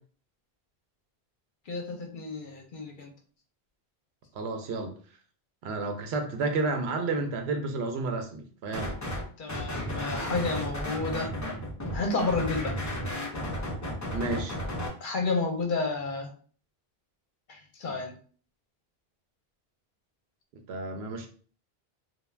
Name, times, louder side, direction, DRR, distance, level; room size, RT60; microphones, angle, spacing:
voice 1, 1.7-3.1 9.4-11.3 11.9-12.8 15.0-16.3 17.5-18.1, left 3 dB, 60° left, 2 dB, 0.7 m, -31 dB
voice 2, 4.3-4.9 5.6-9.0 14.1-14.6 20.7-21.3, right 3 dB, 85° right, 4 dB, 0.9 m, -31 dB
sound 1, 8.7-9.2 9.5-14.9, equal, 25° left, 0.4 m, -33 dB
2.3 x 2.3 x 3.2 m, 0.43 s
omnidirectional pair, 1.0 m